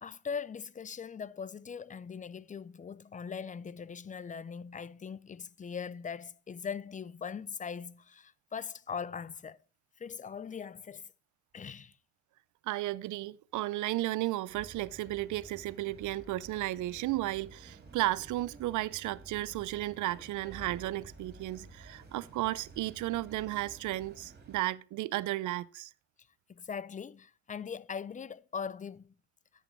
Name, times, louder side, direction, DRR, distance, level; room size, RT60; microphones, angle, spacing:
voice 1, 0.0-9.6 10.0-11.1 11.5-12.0 26.5-29.1, left 6 dB, 25° left, 0.5 m, -40 dB
voice 2, 12.6-25.9, right 16 dB, 80° right, 0.6 m, -34 dB
sound 1, 14.5-24.6, right 3 dB, 35° right, 3.2 m, -52 dB
10.5 x 8.3 x 4.5 m
cardioid pair, 90°, 30 cm